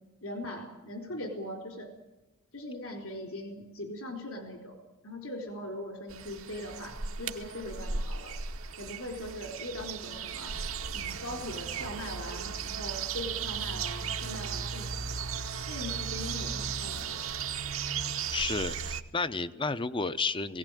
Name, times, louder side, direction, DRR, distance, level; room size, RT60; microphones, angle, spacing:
voice 1, 0.2-1.9 2.5-4.8 5.0-8.3 8.8-10.6 10.9-15.3 15.7-17.4, left 1 dB, 70° left, 3 dB, 4.2 m, -40 dB
sound 1, 6.1-19.0, right 6 dB, 65° right, 1.1 m, -36 dB
voice 2, 18.3-20.6, left 4 dB, 25° left, 14 dB, 0.7 m, -31 dB
19.5 x 17.5 x 9.2 m, 1.1 s
head